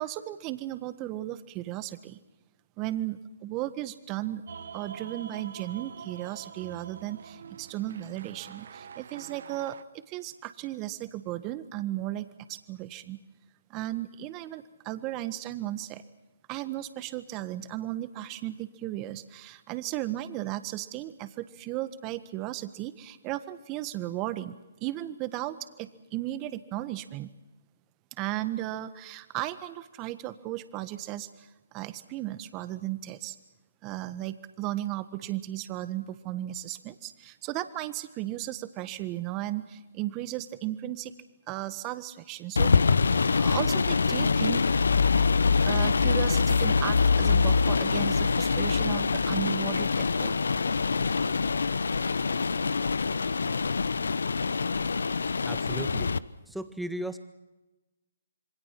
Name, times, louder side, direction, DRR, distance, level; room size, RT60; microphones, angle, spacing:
voice 1, 0.0-2.2 2.8-4.4 4.7-9.8 10.1-13.2 13.7-16.0 16.5-27.3 28.2-33.3 33.8-41.1 41.5-43.0 43.4-44.6 45.7-50.3, right 15 dB, 25° right, 12 dB, 1.5 m, -35 dB
sound 1, 4.5-9.8, right 6 dB, 60° right, 1.1 m, -45 dB
sound 2, 42.6-56.2, left 4 dB, 75° left, 0.9 m, -24 dB
voice 2, 55.5-56.1 56.5-57.2, right 1 dB, ahead, 9 dB, 1.7 m, -36 dB
27.5 x 23.5 x 6.0 m, 1.1 s
figure-of-eight pair, 135°, 0 cm